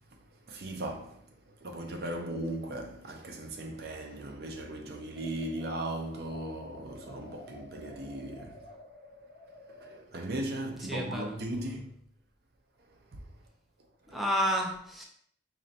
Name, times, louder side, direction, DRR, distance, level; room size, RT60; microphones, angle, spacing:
voice 1, 0.5-8.8 9.7-11.9 13.1-13.3 14.1-14.2, right 1 dB, 55° right, 0.5 m, -38 dB
sound 1, 5.1-10.0, left 2 dB, 85° left, 0.7 m, -51 dB
voice 2, 10.9-11.6 14.1-15.0, equal, ahead, 0.4 m, -31 dB
4.2 x 3.0 x 2.7 m
head